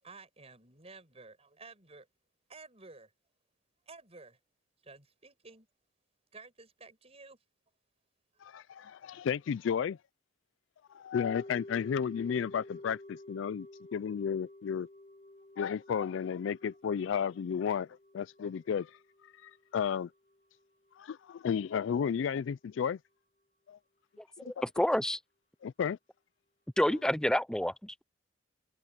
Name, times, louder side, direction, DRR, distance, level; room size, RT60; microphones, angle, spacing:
voice 1, 0.0-2.1 2.5-3.1 3.9-4.4 4.8-5.7 6.3-7.4 8.4-8.6 9.3-9.4, right 3 dB, 30° right, 6.8 m, -53 dB
voice 2, 8.4-10.0 10.9-13.7 13.9-14.9 15.6-17.9 18.1-18.9 19.4-20.1 21.0-23.0 23.7-23.8 24.4-24.5 25.6-26.0, left 7 dB, 70° left, 0.3 m, -33 dB
sound 1, 11.2-21.5 21.8-21.9, left 1 dB, 35° left, 2.8 m, -52 dB
voice 3, 24.4-25.2 26.8-28.0, left 1 dB, 5° left, 0.5 m, -29 dB
open air
head